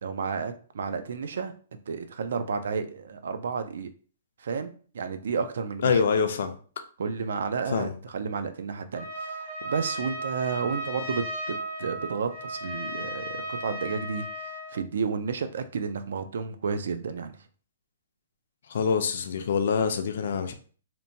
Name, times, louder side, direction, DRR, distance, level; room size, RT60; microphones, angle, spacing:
voice 1, 0.0-1.5 1.9-3.9 4.4-6.0 7.0-17.4, right 5 dB, 65° right, 0.3 m, -32 dB
voice 2, 5.8-6.5 7.7-7.9 18.7-20.5, left 6 dB, 55° left, 0.4 m, -25 dB
Trumpet, 8.9-14.8, right 1 dB, 45° right, 0.9 m, -35 dB
2.9 x 2.1 x 2.6 m
hypercardioid pair, 170°, 0 cm